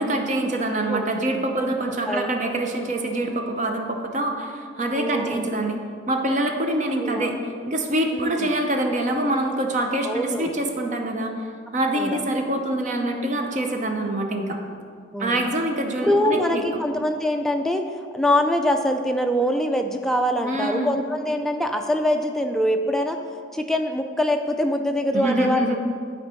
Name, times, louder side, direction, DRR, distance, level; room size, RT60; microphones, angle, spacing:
voice 1, 0.0-5.8 6.1-11.3 11.7-14.6 15.2-16.6 20.4-21.0 25.1-25.8, right 1 dB, 40° right, 3 dB, 0.6 m, -25 dB
voice 2, 5.0-5.5 7.0-7.4 8.1-8.5 10.0-10.5 12.0-12.2 15.1-15.4 16.0-17.9 18.1-23.2 23.5-25.8, left 1 dB, ahead, 4 dB, 0.3 m, -24 dB
8.8 x 4.4 x 4.4 m, 2.2 s
head